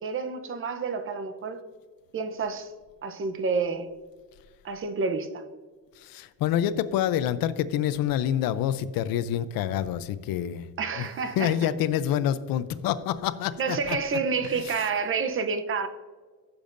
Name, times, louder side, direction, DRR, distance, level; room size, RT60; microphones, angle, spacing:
voice 1, 0.0-1.6 2.1-2.7 3.0-3.9 4.6-5.5 10.8-11.5 13.6-15.9, right 5 dB, 35° right, 9 dB, 0.8 m, -29 dB
voice 2, 6.0-10.7 11.0-11.1 11.4-14.0 14.5-14.7, left 10 dB, 80° left, 14 dB, 0.6 m, -27 dB
15.0 x 7.0 x 2.6 m, 1.5 s
cardioid pair, 140°, 35 cm